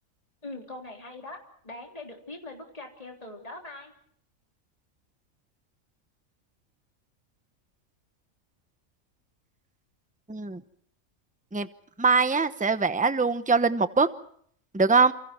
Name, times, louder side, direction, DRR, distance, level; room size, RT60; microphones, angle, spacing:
voice 1, 0.4-1.4 1.6-3.9, left 2 dB, 25° left, 1 dB, 3.8 m, -41 dB
voice 2, 10.3-10.6 11.5-11.7 12.0-14.1 14.7-15.1, right 4 dB, 5° right, 12 dB, 0.9 m, -22 dB
30.0 x 28.0 x 4.5 m, 0.65 s
omnidirectional pair, 1.4 m